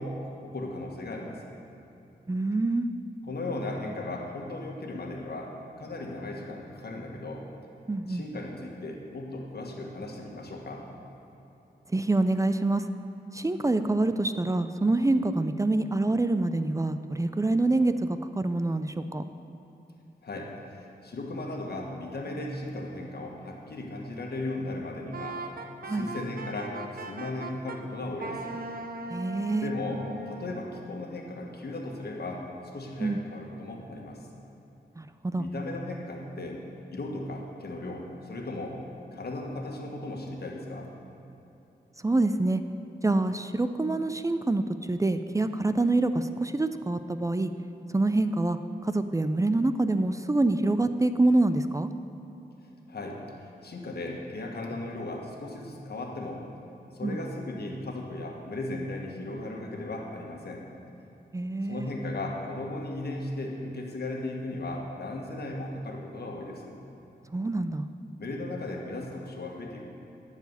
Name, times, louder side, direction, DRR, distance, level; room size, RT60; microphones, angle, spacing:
voice 1, 0.0-1.5 3.2-5.5 5.8-7.4 8.1-10.9 20.2-25.4 25.8-28.6 29.6-32.4 32.7-34.3 35.4-36.6 36.9-38.8 39.1-40.9 52.9-56.5 56.9-60.6 61.7-66.7 68.2-69.9, left 2 dB, 65° left, 0 dB, 1.6 m, -36 dB
voice 2, 2.3-2.9 7.9-8.2 11.9-12.9 13.3-19.2 25.9-26.1 29.1-29.7 33.0-33.2 35.0-35.5 42.0-42.6 43.0-47.5 47.9-51.9 57.0-57.2 61.3-62.0 67.3-67.9, right 2 dB, 20° right, 10 dB, 0.4 m, -26 dB
Wind instrument woodwind instrument, 25.1-27.8 28.2-30.6, right 2 dB, 55° right, 0.8 m, -39 dB
11.0 x 4.8 x 8.1 m, 2.9 s
cardioid pair, 60°, 18 cm